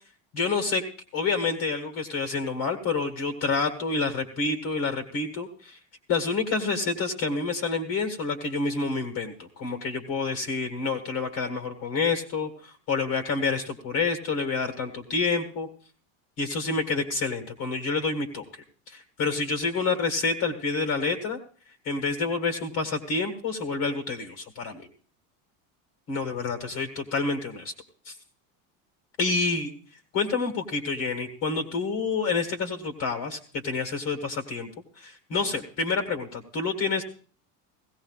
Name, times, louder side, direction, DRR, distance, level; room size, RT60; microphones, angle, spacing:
voice 1, 0.3-0.8 1.1-5.8 6.1-15.7 16.4-21.4 21.8-24.8 26.1-27.7 28.0-28.1 29.2-29.7 30.1-34.7 35.0-37.0, left 4 dB, 50° left, 5 dB, 1.8 m, -28 dB
17.0 x 16.0 x 2.4 m, 0.42 s
supercardioid pair, 130°, 41 cm